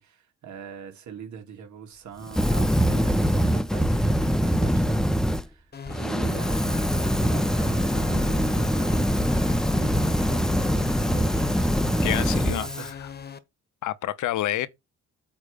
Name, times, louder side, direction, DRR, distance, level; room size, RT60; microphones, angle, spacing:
voice 1, 0.0-5.7 6.0-9.3 9.7-12.9, right 7 dB, 70° right, 2.5 m, -42 dB
Fire, 2.3-5.4 5.9-12.9, equal, ahead, 0.7 m, -23 dB
sound 1, 5.7-13.4, left 7 dB, 35° left, 1.2 m, -38 dB
voice 2, 11.8-13.1 13.8-14.7, left 13 dB, 75° left, 0.9 m, -29 dB
8.8 x 3.2 x 6.6 m
cardioid pair, 90°, 30 cm